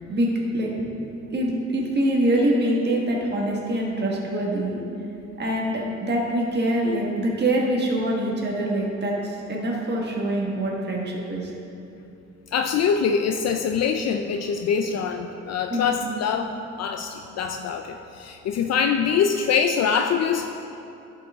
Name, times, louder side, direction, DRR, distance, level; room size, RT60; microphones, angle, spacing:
voice 1, 0.1-0.7 1.3-4.9 5.4-11.5 15.7-16.1, right 1 dB, 35° right, -2 dB, 1.4 m, -24 dB
voice 2, 12.5-20.4, left 6 dB, 60° left, 5 dB, 0.5 m, -24 dB
11.0 x 6.0 x 3.5 m, 2.8 s
cardioid pair, 100°, 30 cm